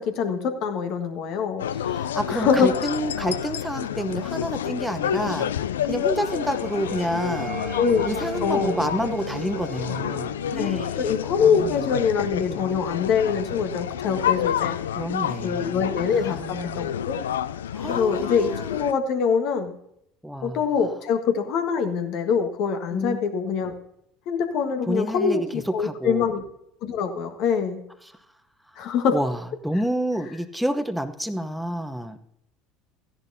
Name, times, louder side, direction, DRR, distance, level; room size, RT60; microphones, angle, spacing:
voice 1, 0.0-1.6 2.3-2.7 7.8-8.1 8.4-8.8 10.6-14.8 15.4-17.2 17.9-19.7 20.4-23.7 24.3-26.4 26.8-27.8 28.8-29.2, left 6 dB, 60° left, 6 dB, 1.5 m, -24 dB
sound 1, 1.6-18.9, left 9 dB, 80° left, 0.3 m, -29 dB
voice 2, 1.8-5.5 5.9-7.6 8.1-11.7 12.3-12.8 15.0-16.8 17.7-18.7 20.2-20.6 22.9-23.2 24.9-25.5 25.8-26.3 29.1-32.2, equal, ahead, 7 dB, 0.9 m, -29 dB
sound 2, 5.4-12.4, right 6 dB, 35° right, 1.6 m, -39 dB
14.0 x 10.5 x 2.7 m, 0.75 s
hypercardioid pair, 75°, 0 cm